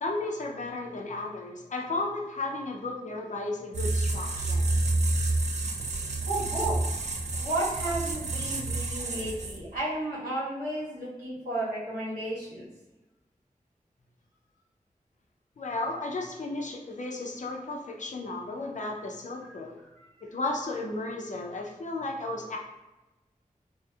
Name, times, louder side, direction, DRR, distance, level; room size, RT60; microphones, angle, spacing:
voice 1, 0.0-4.7 15.6-19.8 20.3-22.6, left 2 dB, 60° left, 0 dB, 0.4 m, -34 dB
sound 1, 3.7-9.8, right 2 dB, 55° right, 0.4 m, -29 dB
voice 2, 6.3-6.9 7.4-12.7 20.0-20.1, right 1 dB, 90° right, -10 dB, 1.2 m, -33 dB
2.7 x 2.0 x 2.3 m, 1.0 s
cardioid pair, 45°, 14 cm